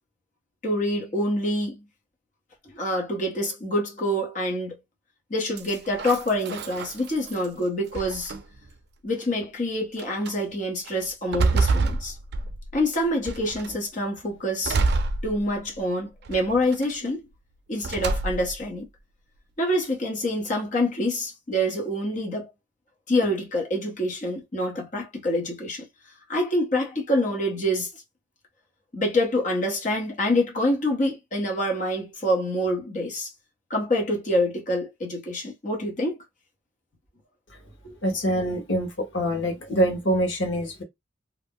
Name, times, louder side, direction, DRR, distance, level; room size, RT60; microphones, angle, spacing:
voice 1, 0.6-1.8 2.7-4.8 5.3-8.3 9.0-12.2 12.7-14.8 15.2-17.2 17.7-18.9 19.6-22.5 23.1-25.9 26.3-27.9 28.9-33.3 33.7-36.2 37.8-37.9, left 1 dB, 40° left, 0.9 m, -26 dB
sound 1, 5.6-7.5 7.9-8.7 9.4-9.5 10.0-10.3 10.9-12.8 13.3-13.8 14.6-15.8 16.3-16.9 17.8-18.6, right 3 dB, 60° right, 0.4 m, -27 dB
voice 2, 38.0-40.8, right 1 dB, 90° left, 1.0 m, -25 dB
2.5 x 2.1 x 3.5 m
head